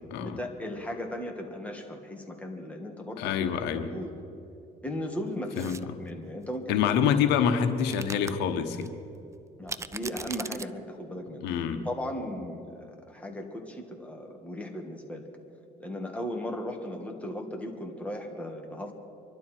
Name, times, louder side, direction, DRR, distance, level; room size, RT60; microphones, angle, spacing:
voice 1, 0.2-3.3 3.9-4.1 4.8-5.8 6.0-7.0 9.6-11.4 11.9-15.3 15.8-18.9, left 1 dB, 10° left, 1 dB, 2.0 m, -36 dB
voice 2, 3.2-3.9 5.6-5.8 6.7-8.9 11.4-11.8, left 8 dB, 90° left, 7 dB, 1.1 m, -26 dB
sound 1, 5.5-5.8 7.8-8.3 8.8-8.9 9.7-10.7, right 4 dB, 15° right, 0.4 m, -38 dB
25.0 x 12.0 x 4.5 m, 2.7 s
cardioid pair, 110°, 17 cm